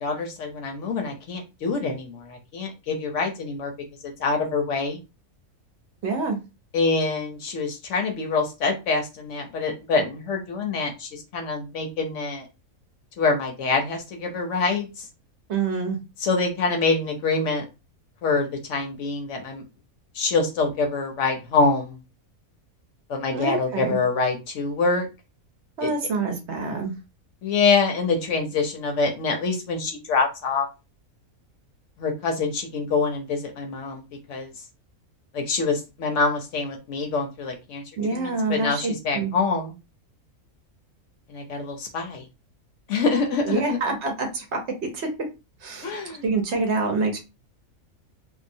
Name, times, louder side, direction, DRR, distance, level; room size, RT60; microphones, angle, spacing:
voice 1, 0.0-3.7 4.0-5.0 6.7-12.5 13.2-15.1 16.2-17.6 18.2-19.6 20.1-22.0 23.1-25.1 25.8-25.9 27.4-30.7 32.0-34.0 34.3-34.5 35.3-37.8 38.1-39.7 41.3-42.2 42.9-43.8 45.8-46.2, left 4 dB, 65° left, 3 dB, 0.9 m, -25 dB
voice 2, 6.0-6.4 15.5-16.0 23.3-24.0 25.8-26.9 38.0-39.3 43.5-45.1 45.6-47.2, right 4 dB, 60° right, 3 dB, 0.9 m, -26 dB
2.7 x 2.1 x 2.6 m, 0.27 s
omnidirectional pair, 1.5 m